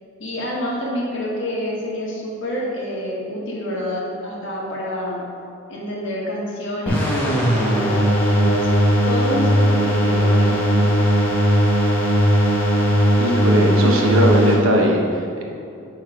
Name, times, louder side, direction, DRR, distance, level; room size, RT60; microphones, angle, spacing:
voice 1, 0.2-5.2 5.7-8.8 9.0-10.9, equal, 60° left, -4 dB, 1.6 m, -27 dB
sound 1, 6.9-14.5, equal, 10° left, 1.0 m, -18 dB
voice 2, 13.2-15.4, right 1 dB, 75° right, 0 dB, 0.9 m, -19 dB
9.2 x 3.2 x 4.9 m, 2.6 s
head